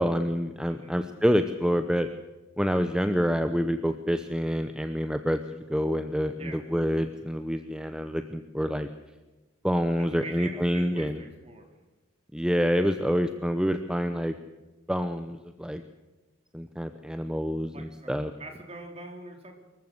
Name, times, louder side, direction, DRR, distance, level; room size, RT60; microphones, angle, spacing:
voice 1, 0.0-2.1 2.6-8.9 9.6-11.2 12.3-14.4 14.9-15.8 16.5-18.3, equal, 5° right, 8 dB, 0.7 m, -27 dB
voice 2, 0.7-1.0 6.3-6.6 10.0-11.7 17.7-19.6, right 2 dB, 30° right, 3 dB, 4.0 m, -43 dB
24.0 x 14.5 x 7.9 m, 1.1 s
head